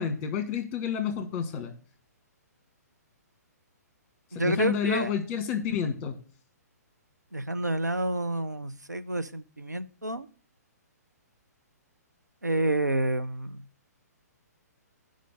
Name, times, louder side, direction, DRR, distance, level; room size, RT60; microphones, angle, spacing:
voice 1, 0.0-1.7 4.3-6.2, left 7 dB, 25° left, 8 dB, 1.3 m, -29 dB
voice 2, 4.3-5.1 7.3-10.3 12.4-13.6, right 1 dB, 85° right, 10 dB, 0.7 m, -29 dB
7.6 x 5.1 x 6.7 m, 0.41 s
figure-of-eight pair, 125°, 9 cm